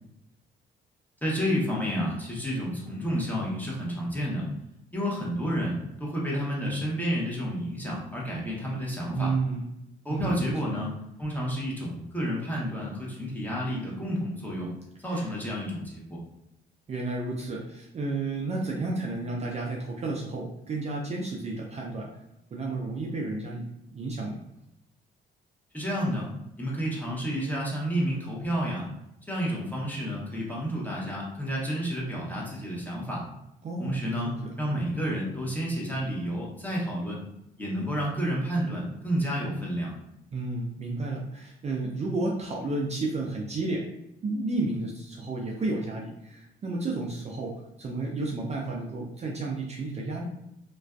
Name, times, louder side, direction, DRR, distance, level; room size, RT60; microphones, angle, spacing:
voice 1, 1.2-4.5 4.9-9.3 10.0-14.7 15.0-16.2 25.7-26.3 26.6-28.8 29.3-33.2 33.8-37.2 37.6-39.9, equal, 10° left, -4 dB, 0.8 m, -30 dB
voice 2, 9.1-9.7 10.1-10.4 15.1-15.2 16.9-22.1 22.5-23.6 23.9-24.4 33.6-34.4 40.3-43.8 44.2-47.5 47.8-50.3, right 2 dB, 35° right, -2 dB, 0.4 m, -31 dB
2.4 x 2.2 x 2.2 m, 0.84 s
cardioid pair, 90°, 20 cm